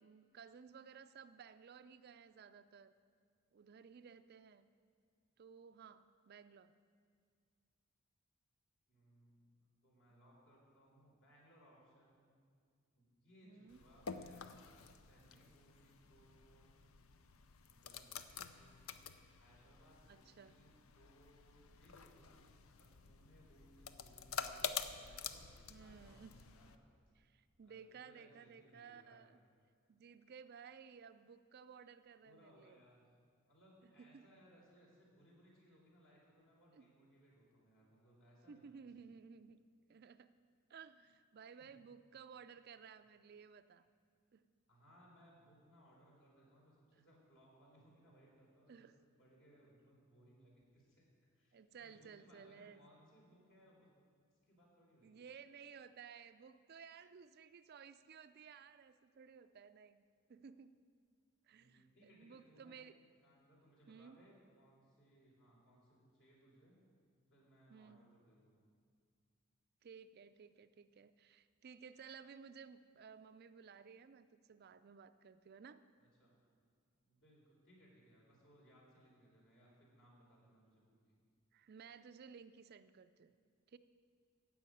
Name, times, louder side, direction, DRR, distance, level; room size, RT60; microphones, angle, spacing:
voice 1, 0.0-2.9 3.5-4.7 5.4-6.7 13.4-13.8 20.1-20.6 25.7-26.4 27.2-29.4 29.9-32.8 33.8-34.2 36.7-36.9 38.5-39.6 39.9-40.3 40.7-43.9 44.3-44.5 46.9-47.0 48.7-49.0 51.5-52.8 55.0-60.0 60.3-60.8 61.4-62.9 63.9-64.2 67.7-68.0 69.8-75.8 81.5-83.3 83.7-83.8, right 6 dB, 50° right, 12 dB, 0.4 m, -57 dB
voice 2, 8.9-12.3 12.9-16.7 17.6-18.1 18.5-19.0 19.4-22.5 22.8-26.8 27.6-29.3 32.2-33.1 33.5-38.8 41.6-41.9 44.7-48.9 49.2-51.1 51.3-53.9 54.4-55.2 61.5-62.8 63.2-66.8 67.3-68.6 76.0-76.4 77.0-81.2, equal, 60° left, -4 dB, 4.0 m, -67 dB
sound 1, 13.7-26.8, left 6 dB, 80° left, 0.6 m, -49 dB
15.0 x 5.7 x 9.2 m, 2.1 s
head